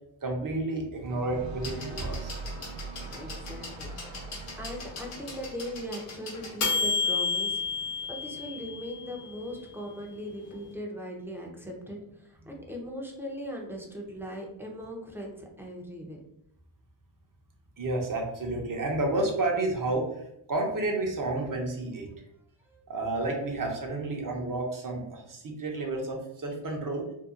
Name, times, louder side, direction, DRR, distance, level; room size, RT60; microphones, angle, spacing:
voice 1, 0.2-2.4 17.8-22.1 22.9-27.0, right 2 dB, 40° right, 1 dB, 0.8 m, -31 dB
sound 1, 1.1-6.0, right 3 dB, 70° right, 0.6 m, -41 dB
sound 2, 1.6-9.4 10.5-10.6, left 4 dB, 85° left, 0.9 m, -33 dB
voice 2, 2.9-3.9 4.6-7.6 8.1-16.2 22.7-22.8, equal, 5° right, -1 dB, 0.6 m, -39 dB
2.7 x 2.3 x 2.4 m, 0.78 s
cardioid pair, 65°, 50 cm